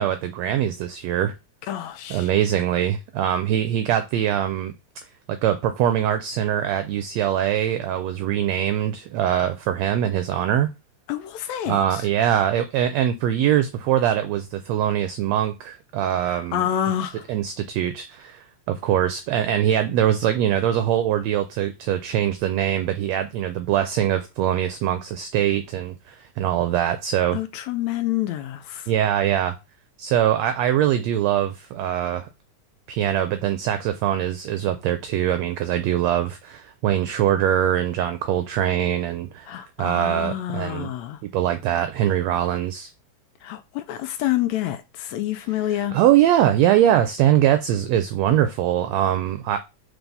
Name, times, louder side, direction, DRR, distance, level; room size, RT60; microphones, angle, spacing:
voice 1, 0.0-1.3 2.1-4.7 5.3-10.7 11.7-16.7 17.3-27.4 28.9-29.6 30.0-32.3 32.9-40.9 41.3-42.9 45.7-49.6, right 11 dB, 80° right, 1.6 m, -22 dB
voice 2, 1.7-2.3 11.1-12.1 16.2-17.2 27.3-28.9 39.5-41.2 43.4-46.0, left 12 dB, 80° left, 1.7 m, -28 dB
4.6 x 4.0 x 5.3 m
omnidirectional pair, 3.4 m